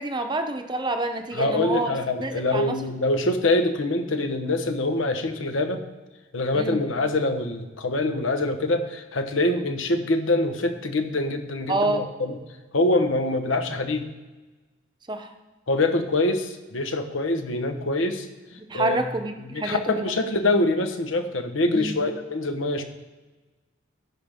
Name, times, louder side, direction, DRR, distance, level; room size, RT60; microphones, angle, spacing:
voice 1, 0.0-1.9 2.2-2.7 6.5-6.8 11.7-12.0 15.1-15.3 18.6-20.0 21.7-22.0, right 2 dB, 25° right, 6 dB, 0.7 m, -27 dB
voice 2, 1.3-5.8 6.3-12.4 12.7-14.0 15.7-18.3 18.7-19.0 19.5-22.8, left 2 dB, 85° left, 6 dB, 1.1 m, -24 dB
16.0 x 5.8 x 3.6 m, 1.2 s
head